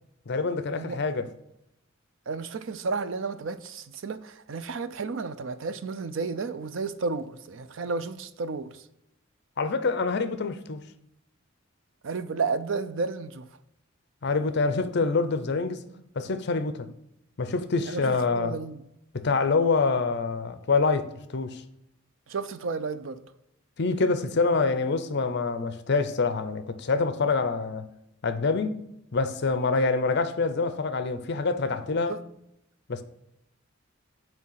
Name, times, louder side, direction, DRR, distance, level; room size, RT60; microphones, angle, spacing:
voice 1, 0.3-1.2 9.6-10.8 14.2-15.8 16.2-16.9 17.4-18.5 19.1-21.6 23.8-27.9 28.2-28.8 29.1-32.2 32.9-33.0, left 4 dB, 55° left, 0.6 m, -26 dB
voice 2, 2.3-8.8 12.0-13.5 17.9-18.8 22.3-23.2 32.1-32.2, right 4 dB, 65° right, 0.5 m, -32 dB
6.3 x 4.5 x 5.6 m
head